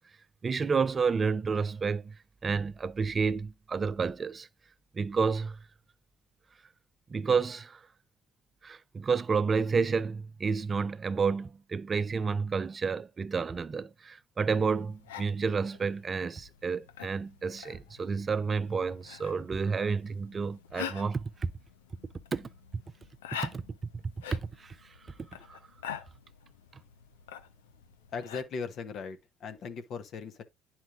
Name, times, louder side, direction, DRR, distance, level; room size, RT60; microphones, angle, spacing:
voice 1, 0.4-2.2 2.4-4.5 4.9-5.6 7.1-7.8 8.6-21.5 22.3-22.5 23.4-23.6 23.9-24.9 25.5-25.6, right 5 dB, 35° right, 0.4 m, -30 dB
sound 1, 14.4-28.4, left 9 dB, 85° left, 0.5 m, -46 dB
voice 2, 28.1-30.4, left 5 dB, 60° left, 0.9 m, -38 dB
10.5 x 4.4 x 2.4 m
hypercardioid pair, 50°, 0 cm